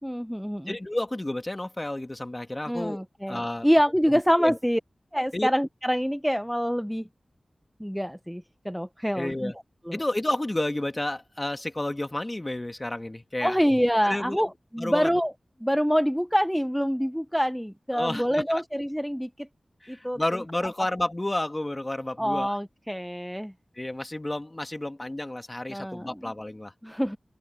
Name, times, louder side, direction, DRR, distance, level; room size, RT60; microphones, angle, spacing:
voice 1, 0.0-0.7 2.7-4.8 5.1-7.1 7.8-9.5 9.9-10.0 13.4-15.3 15.6-19.5 19.9-20.2 22.2-23.5 25.7-26.3 26.8-27.2, equal, ahead, 0.8 m, -26 dB
voice 2, 0.7-3.7 4.4-4.6 5.3-5.5 9.2-9.5 9.9-13.6 14.0-14.5 14.8-15.1 17.9-18.6 19.8-22.5 23.8-26.7, left 1 dB, 25° left, 1.9 m, -31 dB
open air
wide cardioid pair, 55°, 0 cm